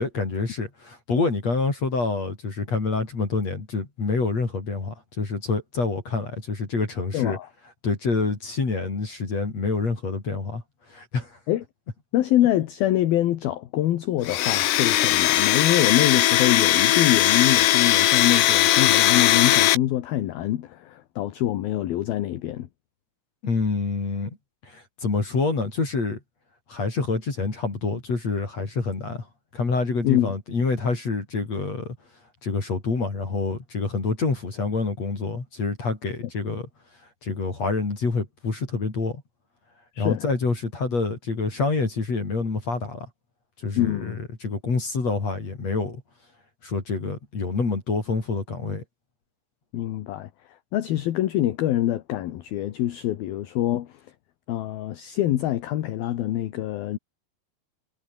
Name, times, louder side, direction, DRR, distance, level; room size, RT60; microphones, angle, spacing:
voice 1, 0.0-7.4 7.8-11.4 23.4-24.4 24.6-26.2 26.7-29.3 29.5-32.0 32.4-36.7 37.2-39.2 40.0-43.1 43.6-46.0 46.6-48.8, left 4 dB, 35° left, 5.3 m, -27 dB
voice 2, 7.1-7.5 11.5-11.6 12.1-22.7 30.0-30.3 39.9-40.2 43.8-44.2 49.7-50.3 50.7-54.0 54.5-57.0, left 13 dB, 65° left, 2.6 m, -25 dB
Domestic sounds home sounds, 14.2-19.8, left 14 dB, 85° left, 4.3 m, -19 dB
omnidirectional pair, 5.8 m